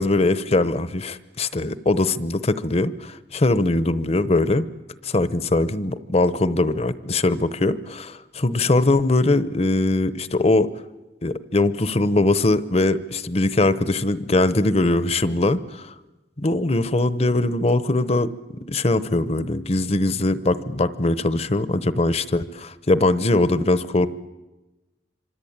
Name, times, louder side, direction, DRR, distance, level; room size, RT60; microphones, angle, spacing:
voice 1, 0.0-4.7 5.0-10.7 11.2-15.9 16.4-24.1, left 2 dB, 35° left, 14 dB, 0.9 m, -21 dB
26.0 x 25.0 x 8.7 m, 1.1 s
head